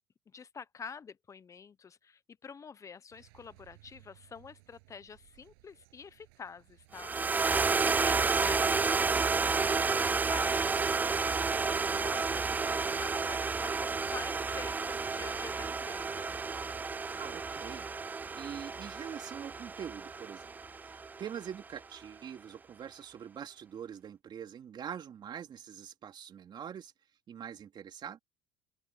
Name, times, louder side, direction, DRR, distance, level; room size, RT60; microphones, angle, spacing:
voice 1, 0.3-7.1 7.8-16.4, left 6 dB, 25° left, 1.0 m, -48 dB
sound 1, 3.1-16.8, right 27 dB, 85° right, 7.8 m, -61 dB
sound 2, 6.9-21.4, right 4 dB, 15° right, 0.3 m, -31 dB
voice 2, 17.1-20.5 20.8-26.9 27.3-28.2, right 8 dB, 40° right, 3.4 m, -44 dB
open air
supercardioid pair, 115°, 12 cm